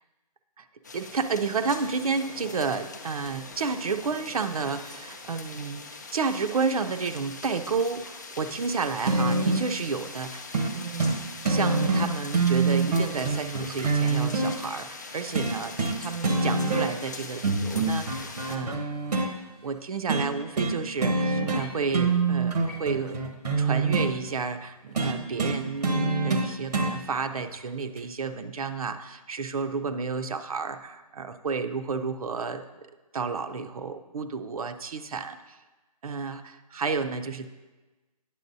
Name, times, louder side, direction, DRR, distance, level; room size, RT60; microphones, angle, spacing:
sound 1, 0.8-18.6, left 3 dB, 30° left, 0.5 m, -42 dB
voice 1, 0.9-5.8 6.1-11.1 11.5-18.8 19.6-23.2 23.6-32.6 33.1-35.6 36.0-37.6, right 4 dB, 65° right, 8 dB, 0.5 m, -31 dB
sound 2, 9.1-9.7 10.5-10.7 11.0-11.2 11.5-14.5 15.4-16.0 16.2-17.1 17.4-19.3 20.1-20.3 20.6-20.8 21.0-21.7 21.9-24.1 25.0-26.9 28.0-28.1, right 3 dB, 85° right, 1.0 m, -25 dB
9.8 x 6.8 x 2.7 m, 1.2 s
hypercardioid pair, 175°, 20 cm